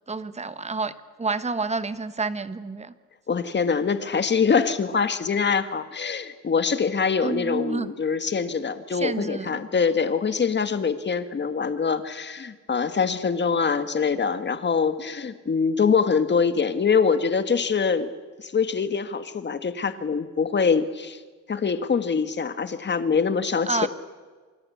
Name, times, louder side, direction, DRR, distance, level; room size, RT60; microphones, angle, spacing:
voice 1, 0.1-0.9 1.2-2.9 7.2-7.9 8.9-9.6 23.7-23.9, right 3 dB, 20° right, 12 dB, 1.3 m, -29 dB
voice 2, 3.3-18.1 18.4-21.2 21.5-23.9, left 5 dB, 35° left, 10 dB, 1.7 m, -24 dB
28.0 x 24.0 x 8.6 m, 1.4 s
cardioid pair, 145°, 32 cm